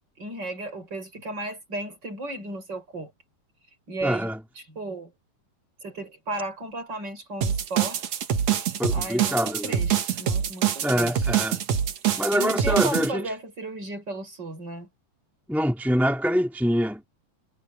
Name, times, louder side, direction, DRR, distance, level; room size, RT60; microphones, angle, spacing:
voice 1, 0.2-3.1 3.9-5.1 5.8-8.0 8.9-11.1 12.3-14.9, right 2 dB, 30° right, 7.3 m, -34 dB
voice 2, 4.0-4.4 8.8-9.8 10.8-11.6 12.2-13.3 15.5-17.1, equal, ahead, 3.1 m, -25 dB
sound 1, 7.4-13.1, right 9 dB, 55° right, 2.6 m, -25 dB
omnidirectional pair, 4.0 m